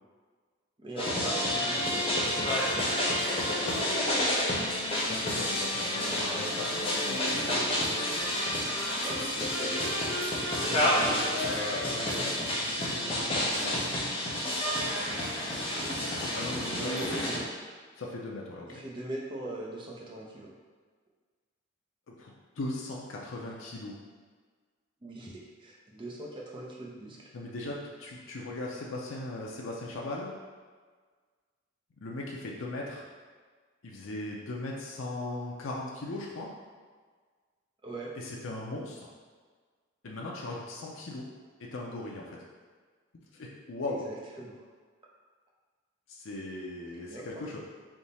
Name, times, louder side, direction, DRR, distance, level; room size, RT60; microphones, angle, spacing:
voice 1, 0.8-2.8 3.3-4.3 9.0-9.8 16.8-17.4 18.7-20.5 25.0-27.3 37.8-38.1 44.0-44.6 46.9-47.3, right 2 dB, 25° right, -3 dB, 0.7 m, -41 dB
sound 1, 1.0-17.4, left 1 dB, 30° left, 0.8 m, -29 dB
voice 2, 5.0-7.8 10.6-13.8 15.7-17.3 17.9-18.8 22.1-23.9 27.3-30.3 32.0-33.1 33.8-36.5 38.2-39.1 40.0-41.3 41.6-42.4 43.3-44.0 46.1-47.6, left 2 dB, 70° left, -3 dB, 0.5 m, -39 dB
3.5 x 2.7 x 4.1 m, 1.5 s
head